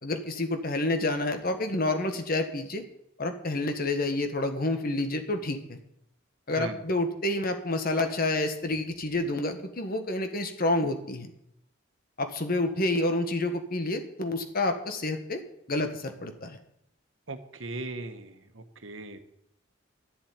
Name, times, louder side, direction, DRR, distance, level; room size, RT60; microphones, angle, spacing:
voice 1, 0.0-2.8 3.2-5.8 6.5-11.3 12.2-15.4 15.7-16.6, left 2 dB, 50° left, 7 dB, 1.6 m, -29 dB
voice 2, 17.3-19.2, right 2 dB, 75° right, 8 dB, 1.3 m, -38 dB
11.5 x 7.5 x 9.6 m, 0.77 s
head